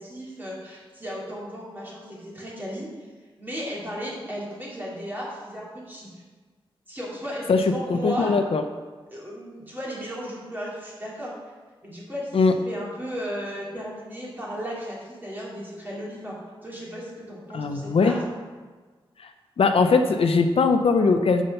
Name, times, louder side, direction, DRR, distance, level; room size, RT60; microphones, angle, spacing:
voice 1, 0.0-2.9 3.4-6.1 6.9-8.4 9.1-11.3 11.8-16.3 16.6-18.2, equal, 20° right, -6 dB, 2.7 m, -35 dB
voice 2, 7.9-8.6 12.3-12.5 17.5-18.2 19.6-21.4, left 4 dB, 75° left, 7 dB, 0.6 m, -20 dB
7.4 x 5.2 x 5.5 m, 1.4 s
wide cardioid pair, 100°, 10 cm